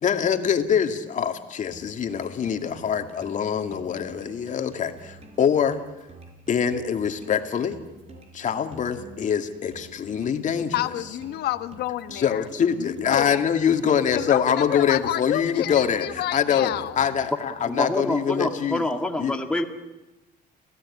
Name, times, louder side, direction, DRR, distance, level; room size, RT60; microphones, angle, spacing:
voice 1, 0.0-5.8 6.5-7.8 8.3-10.7 12.1-18.9 19.2-19.4, left 8 dB, 50° left, 6 dB, 2.4 m, -24 dB
sound 1, 1.7-17.7, right 2 dB, 40° right, 5.3 m, -48 dB
voice 2, 10.7-12.5 12.7-13.5 14.1-17.0, left 13 dB, 75° left, 12 dB, 1.3 m, -29 dB
voice 3, 17.7-19.6, left 1 dB, 5° left, 3 dB, 2.2 m, -26 dB
29.5 x 16.5 x 9.9 m, 1.0 s
cardioid pair, 110°, 17 cm